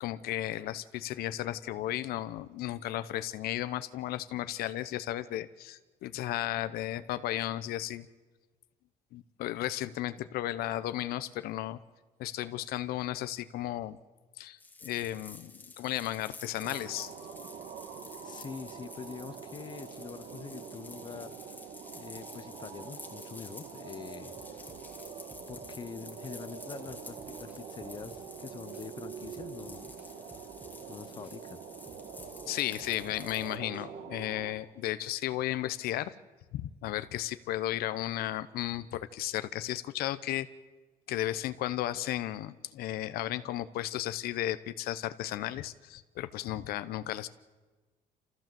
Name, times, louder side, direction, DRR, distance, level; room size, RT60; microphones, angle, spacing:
voice 1, 0.0-8.1 9.1-11.8 12.2-14.0 14.4-17.1 32.5-36.1 36.5-40.5 41.1-47.3, left 14 dB, 80° left, 13 dB, 0.8 m, -34 dB
sound 1, 14.6-33.6, left 3 dB, 10° left, 1.9 m, -51 dB
sound 2, 16.6-34.5, right 6 dB, 65° right, 2.0 m, -45 dB
voice 2, 18.2-21.6 21.9-24.6 25.5-30.0 30.3-30.4 30.9-31.6, left 6 dB, 30° left, 12 dB, 0.8 m, -45 dB
sound 3, 24.4-25.8 26.2-26.4 26.9-28.3 28.7-28.9 29.2-30.8 31.2-31.4 31.9-33.3 33.7-33.9, right 1 dB, 10° right, 1.7 m, -56 dB
28.0 x 14.5 x 7.7 m, 1.3 s
cardioid pair, 155°, 15 cm